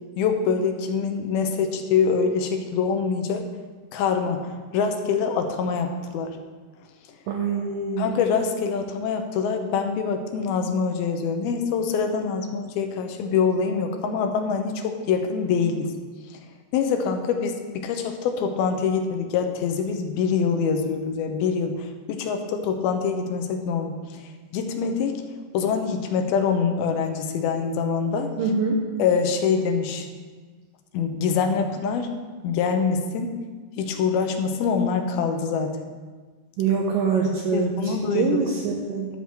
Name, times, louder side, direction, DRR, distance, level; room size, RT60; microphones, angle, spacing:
voice 1, 0.2-3.4 3.9-6.4 8.0-15.9 16.3-16.4 16.7-24.2 24.5-25.2 25.5-28.3 29.0-30.1 30.9-32.1 32.4-33.3 33.8-35.8 37.5-38.4, left 6 dB, 80° left, 5 dB, 2.5 m, -25 dB
voice 2, 7.3-8.2 28.4-28.8 36.6-39.1, right 5 dB, 75° right, -1 dB, 2.2 m, -24 dB
12.0 x 4.8 x 6.8 m, 1.4 s
omnidirectional pair, 4.6 m